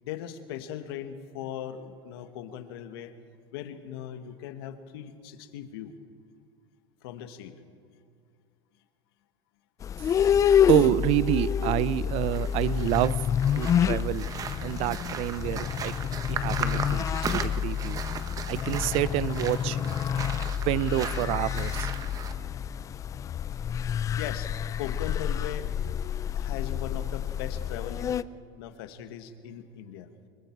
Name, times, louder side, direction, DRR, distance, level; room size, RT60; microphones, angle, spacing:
voice 1, 0.0-3.1 3.5-5.9 7.0-7.5 24.2-24.5 24.8-25.7 26.3-28.2 28.6-30.1, left 10 dB, 80° left, 9 dB, 1.7 m, -39 dB
sound 1, 9.8-28.2, left 8 dB, 25° left, 0.5 m, -28 dB
voice 2, 10.7-13.2 13.6-14.3 14.6-15.9 16.3-18.0 18.5-19.8 20.6-21.9, right 15 dB, 50° right, 19 dB, 0.6 m, -27 dB
sound 2, 12.2-22.3, right 6 dB, 30° right, 1.2 m, -38 dB
25.5 x 23.0 x 4.6 m, 2.3 s
supercardioid pair, 130°, 12 cm